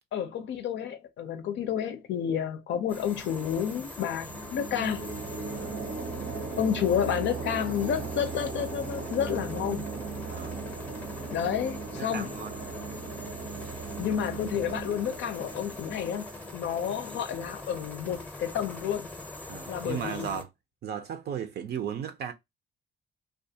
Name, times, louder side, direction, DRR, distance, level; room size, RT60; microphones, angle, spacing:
voice 1, 0.1-5.1 6.6-9.9 11.3-12.3 14.0-19.1 19.7-20.3, left 9 dB, 70° left, 0.5 m, -30 dB
sound 1, 2.9-20.4, left 2 dB, 5° left, 0.6 m, -43 dB
sound 2, 4.2-17.6, right 4 dB, 85° right, 1.0 m, -38 dB
voice 2, 10.3-10.6 12.0-12.6 19.5-20.5 20.8-22.3, right 8 dB, 55° right, 0.5 m, -35 dB
2.3 x 2.3 x 2.7 m
cardioid pair, 90°, 20 cm